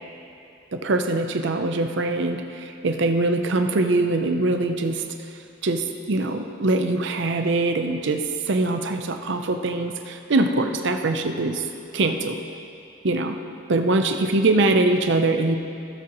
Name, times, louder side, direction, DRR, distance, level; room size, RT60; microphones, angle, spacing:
voice 1, 0.7-5.0 5.6-11.6 11.9-12.4 13.0-13.3 13.7-15.6, right 2 dB, 65° right, 6 dB, 0.6 m, -23 dB
16.5 x 7.6 x 3.0 m, 2.6 s
head